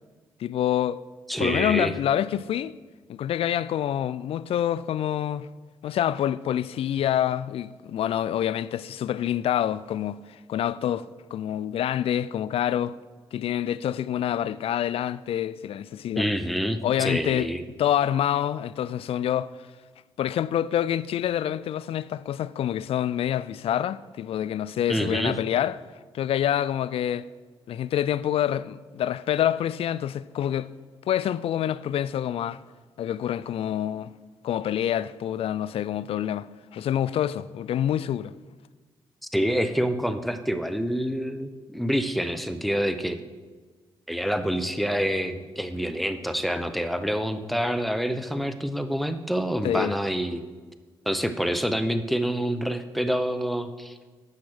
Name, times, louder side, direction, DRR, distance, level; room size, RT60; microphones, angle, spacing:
voice 1, 0.4-1.0 1.4-2.8 3.1-5.5 5.8-13.0 13.3-16.3 16.8-17.5 17.8-19.5 20.2-25.8 26.1-27.3 27.7-30.7 31.1-32.6 33.0-34.1 34.4-38.3 49.6-49.9, left 10 dB, 65° left, 0.4 m, -27 dB
voice 2, 1.3-1.9 16.2-17.6 24.9-25.4 39.3-43.2 44.1-50.4 51.1-53.9, equal, ahead, 0.9 m, -27 dB
8.6 x 6.0 x 6.5 m
hypercardioid pair, 45°, 11 cm